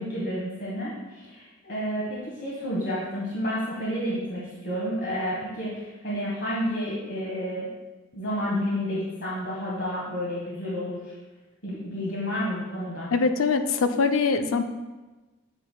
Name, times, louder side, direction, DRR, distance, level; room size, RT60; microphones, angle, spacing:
voice 1, 0.0-7.7 8.1-11.0 11.6-13.1, equal, 60° left, -7 dB, 1.5 m, -30 dB
voice 2, 13.1-14.6, left 4 dB, 80° left, 8 dB, 0.5 m, -23 dB
8.8 x 7.4 x 2.3 m, 1.2 s
head